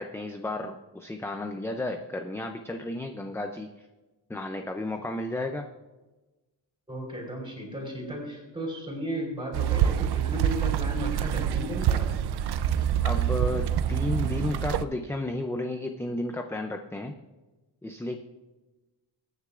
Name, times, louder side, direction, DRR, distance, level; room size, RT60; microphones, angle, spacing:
voice 1, 0.0-3.7 4.3-5.7 13.0-17.1 17.8-18.2, left 2 dB, 5° left, 5 dB, 0.4 m, -33 dB
voice 2, 6.9-12.1, equal, 10° right, -1 dB, 3.9 m, -35 dB
sound 1, 9.5-14.8, right 10 dB, 65° right, 0.6 m, -26 dB
22.0 x 9.8 x 2.4 m, 1.2 s
wide cardioid pair, 170°, 43 cm